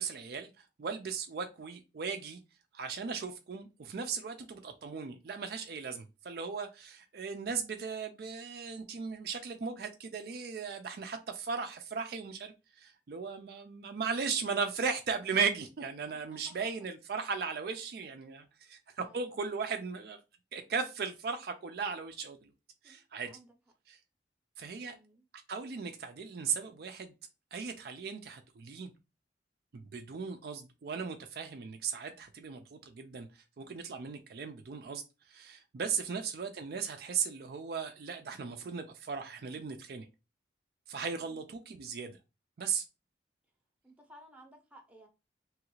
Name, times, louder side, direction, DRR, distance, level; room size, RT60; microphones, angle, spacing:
voice 1, 0.0-2.4 2.7-20.2 20.5-22.5 22.8-23.3 23.9-24.0 24.6-25.0 25.5-27.1 27.5-28.9 29.7-40.1 40.9-42.2 42.6-42.9, right 5 dB, 55° right, 0.4 m, -37 dB
voice 2, 16.1-16.7 19.0-19.3 22.8-23.5 24.7-25.2 33.9-34.2 35.8-35.9 41.2-41.4 43.8-45.1, equal, 5° right, 0.7 m, -58 dB
3.1 x 2.4 x 3.0 m
head